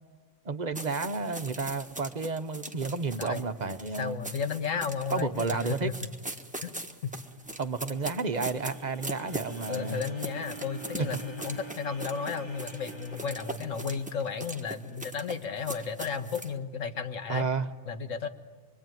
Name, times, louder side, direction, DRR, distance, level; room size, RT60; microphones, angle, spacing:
voice 1, 0.4-4.2 5.1-5.9 7.6-10.0 17.3-17.7, right 4 dB, 40° right, 9 dB, 0.9 m, -31 dB
sound 1, 0.7-16.5, right 1 dB, 5° right, 1.2 m, -41 dB
voice 2, 4.0-6.1 6.6-6.7 7.0-7.2 9.7-17.5 17.9-18.3, left 6 dB, 90° left, 8 dB, 1.6 m, -33 dB
sound 2, 7.1-15.4, right 5 dB, 20° left, 1.7 m, -48 dB
25.0 x 24.0 x 9.2 m, 1.5 s
omnidirectional pair, 1.3 m